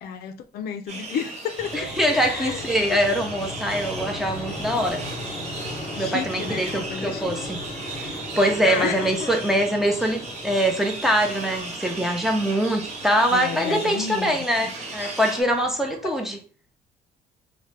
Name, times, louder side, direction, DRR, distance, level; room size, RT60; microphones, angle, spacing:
voice 1, 0.0-1.7 2.1-3.2 4.5-4.6 6.0-7.3 8.6-9.3 13.3-14.7, left 7 dB, 65° left, 0.4 m, -32 dB
sound 1, 0.9-15.4, right 3 dB, 40° right, 0.8 m, -36 dB
sound 2, 1.6-16.2, left 1 dB, 25° left, 1.1 m, -38 dB
voice 2, 1.7-5.0 6.0-7.6 8.0-16.4, equal, ahead, 0.6 m, -23 dB
2.8 x 2.1 x 3.2 m
cardioid pair, 110°, 17 cm